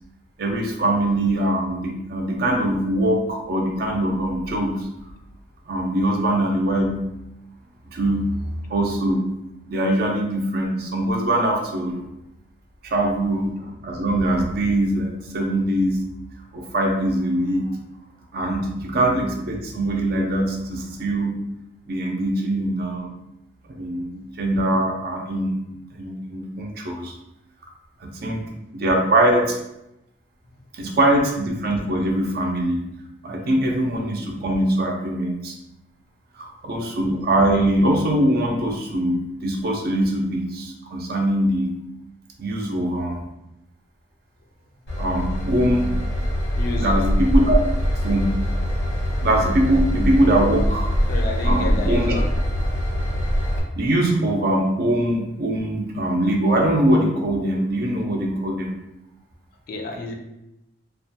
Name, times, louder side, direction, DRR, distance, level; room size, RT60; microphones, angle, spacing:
voice 1, 0.4-4.9 5.7-7.0 7.9-8.3 8.7-9.2 9.7-12.0 12.8-16.0 16.5-17.7 18.3-21.4 21.9-23.1 23.7-25.6 26.0-27.1 28.0-28.5 28.7-29.6 30.7-32.8 33.2-35.6 36.4-41.8 42.4-43.2 45.0-46.0 46.8-47.6 48.0-48.4 49.2-50.9 51.4-52.1 53.7-58.7, right 1 dB, 55° right, 1 dB, 0.4 m, -22 dB
Train / Engine, 44.9-53.6, equal, 85° left, 1.0 m, -23 dB
voice 2, 46.6-47.1 51.1-52.3 59.7-60.1, left 2 dB, 55° left, 2 dB, 0.4 m, -29 dB
2.3 x 2.2 x 2.7 m, 0.88 s
head